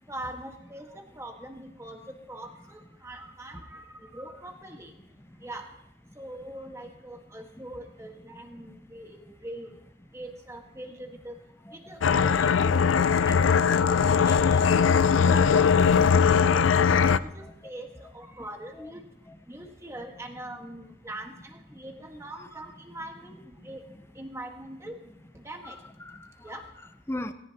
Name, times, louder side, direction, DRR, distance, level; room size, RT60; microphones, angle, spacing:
voice 1, 0.1-4.9 5.4-5.7 6.2-9.8 10.1-11.3 11.7-13.4 13.8-15.8 16.2-19.0 19.5-23.4 23.6-23.9 24.1-25.8 26.4-26.6, right 1 dB, 15° right, 3 dB, 1.5 m, -42 dB
voice 2, 11.7-12.2 17.2-17.5 18.8-18.9 19.3-19.4 22.4-22.5 23.9-24.0 25.6-27.3, left 1 dB, 15° left, 9 dB, 0.7 m, -41 dB
sound 1, 12.0-17.2, left 6 dB, 90° left, 0.4 m, -20 dB
17.5 x 17.5 x 2.9 m, 0.84 s
head